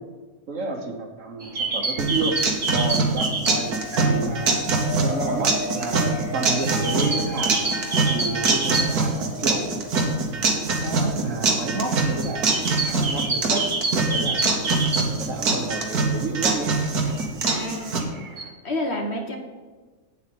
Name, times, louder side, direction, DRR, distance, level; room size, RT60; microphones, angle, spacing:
voice 1, 0.5-2.4 2.7-4.5 4.9-7.5 8.1-9.8 10.8-13.6 14.1-14.5 15.1-16.8, right 3 dB, 60° right, 3 dB, 1.5 m, -30 dB
sound 1, 1.4-4.1 4.5-9.4 9.7-9.8 10.0-10.3 10.8-15.8 16.2-18.5, right 3 dB, 35° right, 1.4 m, -29 dB
sound 2, 2.0-18.0, right 3 dB, 90° right, 1.9 m, -24 dB
sound 3, 3.5-10.9, left 3 dB, 90° left, 2.2 m, -36 dB
voice 2, 17.4-18.2 18.6-19.4, left 1 dB, 45° left, 1 dB, 1.6 m, -29 dB
8.6 x 7.9 x 6.0 m, 1.3 s
omnidirectional pair, 1.6 m